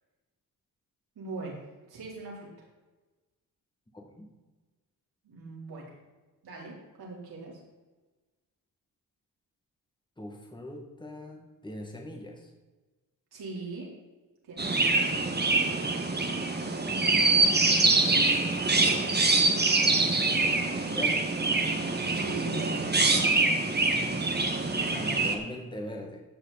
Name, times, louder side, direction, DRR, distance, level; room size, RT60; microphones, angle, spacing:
voice 1, 1.2-1.6 1.9-2.7 5.2-5.9 6.4-7.6 13.3-13.9 14.4-14.8 15.0-15.6 22.1-23.2, right 3 dB, 75° right, -3 dB, 4.0 m, -40 dB
voice 2, 3.9-4.3 10.2-12.5 14.6-15.3 18.0-18.3 19.8-20.3 20.9-21.4 24.7-26.2, left 1 dB, 10° left, 0 dB, 2.1 m, -42 dB
Chirp tweet, 14.6-25.3, right 3 dB, 25° right, 1.7 m, -25 dB
15.0 x 6.4 x 4.2 m, 1.2 s
cardioid pair, 70°, 38 cm